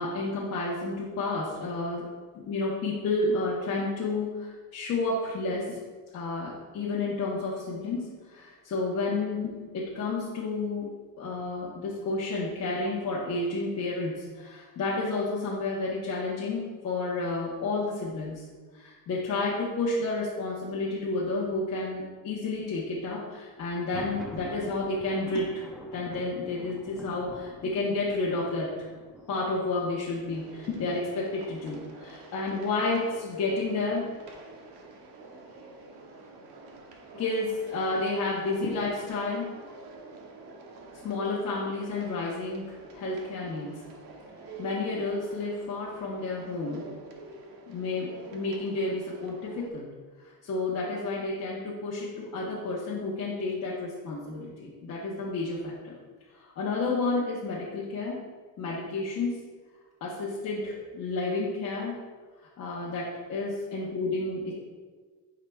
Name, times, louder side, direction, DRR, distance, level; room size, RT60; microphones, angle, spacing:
voice 1, 0.0-2.1 2.3-5.8 6.1-10.9 11.2-18.5 18.7-25.6 25.9-28.9 29.3-34.1 37.1-39.4 41.0-43.8 44.6-46.8 47.7-49.9 50.2-55.9 56.4-58.2 58.6-59.3 60.0-62.0 62.6-64.5, left 3 dB, 40° left, -6 dB, 0.9 m, -31 dB
Thunder, 23.7-31.4, equal, ahead, 0.4 m, -47 dB
sound 1, 30.3-49.7, right 3 dB, 60° right, 0.9 m, -47 dB
9.1 x 4.9 x 2.3 m, 1.4 s
cardioid pair, 170°, 40 cm